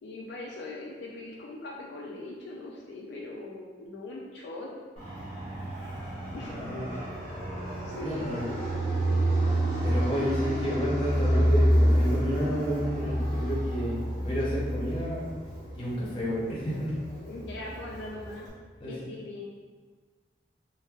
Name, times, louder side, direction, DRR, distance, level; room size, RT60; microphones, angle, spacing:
voice 1, 0.0-4.7 6.3-6.6 7.8-8.6 17.1-18.5 18.8-19.4, left 2 dB, 65° left, -3 dB, 0.3 m, -40 dB
Fixed-wing aircraft airplane, 5.0-18.5, equal, 35° right, 1.0 m, -28 dB
voice 2, 6.3-6.9 8.0-8.4 9.8-15.3 15.7-17.0 18.8-18.9, equal, 25° left, -6 dB, 0.7 m, -31 dB
3.2 x 2.7 x 2.3 m, 1.5 s
head